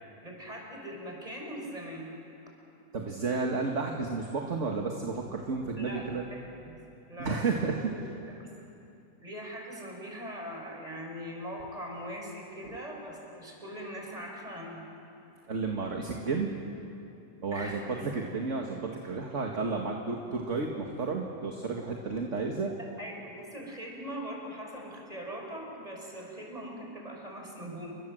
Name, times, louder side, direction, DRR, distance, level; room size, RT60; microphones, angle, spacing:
voice 1, 0.2-2.1 5.8-6.8 7.1-8.0 8.3-8.5 9.2-14.9 17.5-17.9 23.0-27.9, equal, 20° right, 0 dB, 5.8 m, -41 dB
voice 2, 2.9-6.2 7.2-7.9 12.6-12.8 15.5-16.5 17.4-22.7, right 4 dB, 45° right, 1 dB, 2.1 m, -32 dB
29.5 x 23.5 x 7.8 m, 2.8 s
omnidirectional pair, 1.7 m